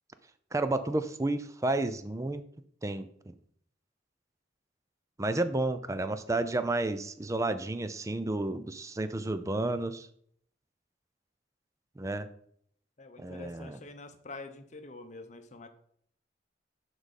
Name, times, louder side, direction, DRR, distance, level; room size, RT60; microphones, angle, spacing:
voice 1, 0.5-2.4 2.8-3.3 5.2-10.1 12.0-12.3 13.2-13.8, right 2 dB, 15° right, 11 dB, 0.5 m, -31 dB
voice 2, 13.0-15.7, left 3 dB, 40° left, 8 dB, 0.8 m, -46 dB
11.5 x 4.8 x 4.2 m, 0.66 s
head